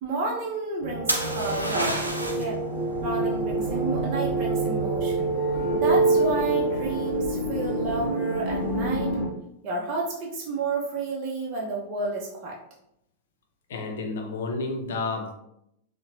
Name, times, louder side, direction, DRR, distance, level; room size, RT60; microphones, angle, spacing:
voice 1, 0.0-2.1 2.4-2.6 3.0-5.3 5.7-9.1 9.6-12.6, right 3 dB, 40° right, -3 dB, 0.6 m, -31 dB
sound 1, 0.8-9.3, right 2 dB, 20° right, 1.0 m, -26 dB
sound 2, 1.1-2.5 6.2-6.7, right 1 dB, 85° right, 0.5 m, -28 dB
voice 2, 13.7-15.3, left 3 dB, 60° left, 3 dB, 0.6 m, -30 dB
3.7 x 2.1 x 3.0 m, 0.78 s
figure-of-eight pair, 90°, 0 cm